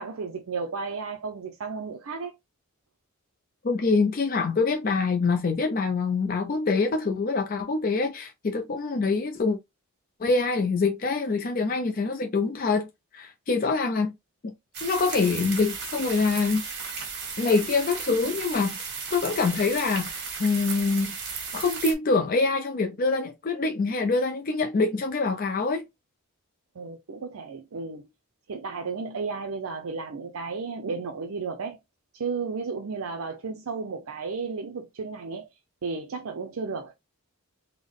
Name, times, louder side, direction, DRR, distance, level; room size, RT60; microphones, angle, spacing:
voice 1, 0.0-2.4 26.8-28.1 28.5-31.8 32.1-35.5 35.8-36.9, right 4 dB, 75° right, 0.5 m, -33 dB
voice 2, 3.6-9.6 10.2-12.9 13.1-14.1 14.4-14.5 14.8-16.6 17.4-21.1 21.5-25.8, left 4 dB, 40° left, 0.4 m, -25 dB
sound 1, 14.7-21.9, right 5 dB, 50° right, 1.4 m, -35 dB
3.6 x 2.1 x 3.5 m
head